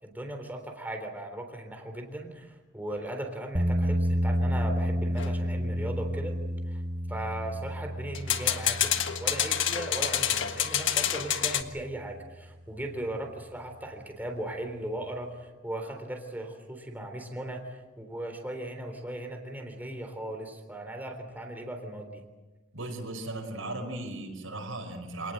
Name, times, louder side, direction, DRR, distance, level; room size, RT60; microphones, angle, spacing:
voice 1, 0.0-6.4 6.7-6.8 7.1-8.9 9.2-22.2, right 1 dB, 10° right, 4 dB, 3.6 m, -38 dB
sound 1, 3.5-11.6, equal, 25° right, 1.6 m, -31 dB
sound 2, 5.2-5.4 8.1-11.6, left 10 dB, 60° left, 1.6 m, -28 dB
voice 2, 22.7-25.3, right 2 dB, 70° right, 3 dB, 5.4 m, -37 dB
27.5 x 19.0 x 7.8 m, 1.2 s
head